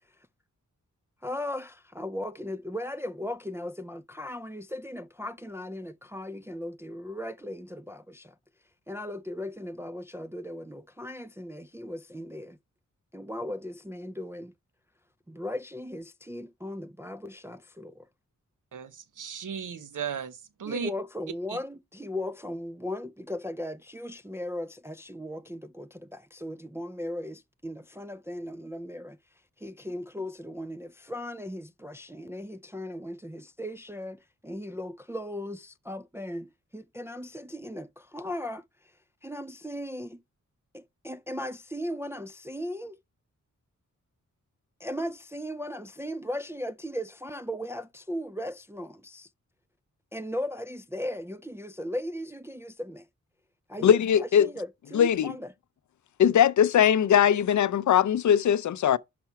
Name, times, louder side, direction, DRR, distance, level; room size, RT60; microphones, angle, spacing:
voice 1, 1.2-8.4 8.9-12.6 13.1-14.5 15.3-18.1 20.7-29.2 29.6-38.9 39.2-40.2 40.7-43.0 44.8-49.3 50.1-53.1 53.7-55.5, left 1 dB, 10° right, 0.3 m, -37 dB
voice 2, 18.7-20.9 21.5-21.6, right 7 dB, 75° right, 0.9 m, -36 dB
voice 3, 53.8-54.5 54.9-55.3 56.2-59.0, left 9 dB, 70° left, 0.5 m, -20 dB
5.8 x 4.2 x 5.7 m
wide cardioid pair, 90°, 31 cm